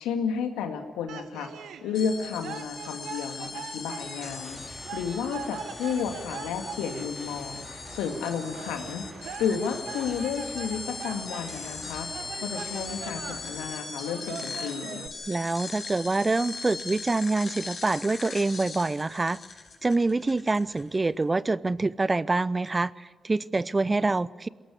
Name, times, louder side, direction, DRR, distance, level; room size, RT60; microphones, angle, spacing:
voice 1, 0.0-12.1 12.4-15.1, left 6 dB, 85° left, 6 dB, 2.0 m, -32 dB
sound 1, 1.1-15.1, right 7 dB, 75° right, 1.3 m, -43 dB
sound 2, 1.9-21.1, left 4 dB, 55° left, 5.4 m, -40 dB
sound 3, 3.7-14.5, equal, 10° right, 4.3 m, -47 dB
voice 2, 15.3-19.4 19.8-24.5, right 3 dB, 30° right, 20 dB, 0.7 m, -26 dB
21.5 x 17.5 x 9.9 m, 1.4 s
hypercardioid pair, 45°, 0 cm